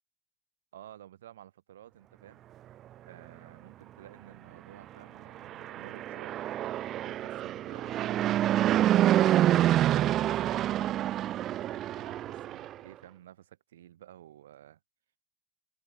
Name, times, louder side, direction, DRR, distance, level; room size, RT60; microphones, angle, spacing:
voice 1, 0.7-2.4 2.7-6.4 7.0-8.4 11.7-14.8, right 12 dB, 85° right, 4.0 m, -52 dB
Fixed-wing aircraft airplane, 5.4-12.7, right 12 dB, 50° right, 0.3 m, -27 dB
hypercardioid pair, 75°, 0 cm